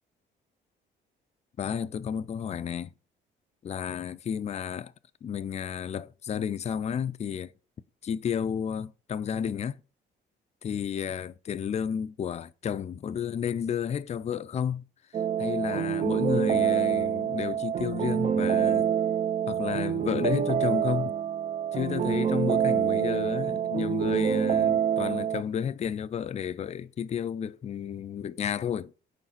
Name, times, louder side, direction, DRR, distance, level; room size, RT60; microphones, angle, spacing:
voice 1, 1.6-2.9 3.6-4.9 5.2-7.5 8.0-9.8 10.6-14.8 15.1-18.9 19.5-21.2 21.7-28.9, left 8 dB, 35° left, 0.4 m, -32 dB
sound 1, 15.1-25.4, right 8 dB, 35° right, 0.4 m, -26 dB
4.9 x 3.9 x 5.6 m
cardioid pair, 90°, 20 cm